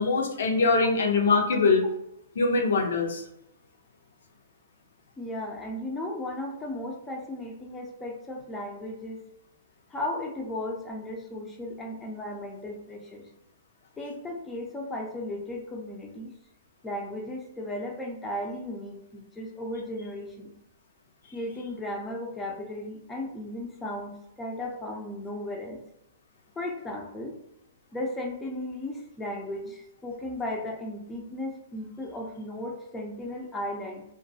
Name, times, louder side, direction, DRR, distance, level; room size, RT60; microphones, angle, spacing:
voice 1, 0.0-1.8 2.4-3.2, left 4 dB, 75° left, 2 dB, 0.5 m, -23 dB
voice 2, 5.2-9.2 9.9-13.3 14.0-16.3 16.8-20.5 21.3-25.8 26.6-27.4 27.9-34.0, left 1 dB, 15° left, 1 dB, 0.5 m, -35 dB
2.3 x 2.2 x 2.6 m, 0.80 s
hypercardioid pair, 130°, 0 cm